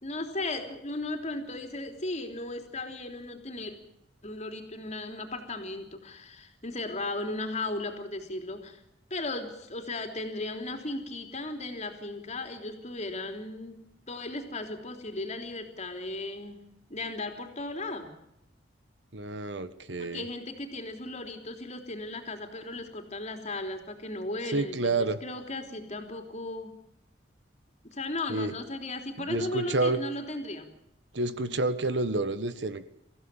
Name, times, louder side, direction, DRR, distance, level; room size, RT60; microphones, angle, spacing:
voice 1, 0.0-3.8 4.2-8.8 9.1-13.8 14.1-16.6 16.9-18.1 20.0-26.8 27.8-30.6, left 2 dB, 40° left, 6 dB, 3.4 m, -36 dB
voice 2, 19.1-20.3 24.5-25.2 28.3-28.5 29.2-30.0 31.1-32.8, right 2 dB, 70° right, 13 dB, 1.4 m, -29 dB
24.5 x 15.5 x 9.0 m, 0.83 s
head